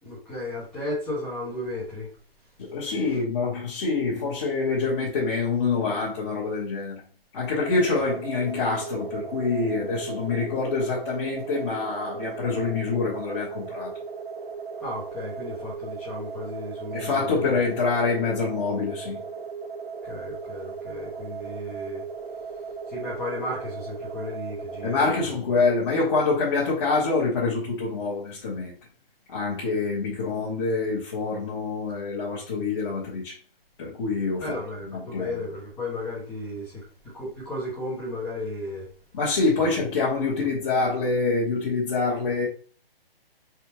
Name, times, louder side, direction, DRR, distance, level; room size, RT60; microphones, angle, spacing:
voice 1, 0.0-2.1 14.8-17.6 20.0-22.0 22.9-25.1 34.4-38.9 39.6-39.7, left 1 dB, 5° left, 0.7 m, -34 dB
voice 2, 2.6-7.0 7.3-13.9 16.9-19.2 24.8-28.8 29.3-33.4 33.8-34.5 34.9-35.4 39.1-42.5, left 4 dB, 25° left, 1.0 m, -26 dB
sound 1, 7.6-25.3, right 5 dB, 85° right, 1.2 m, -37 dB
4.1 x 3.5 x 2.9 m
hypercardioid pair, 160°, 30 cm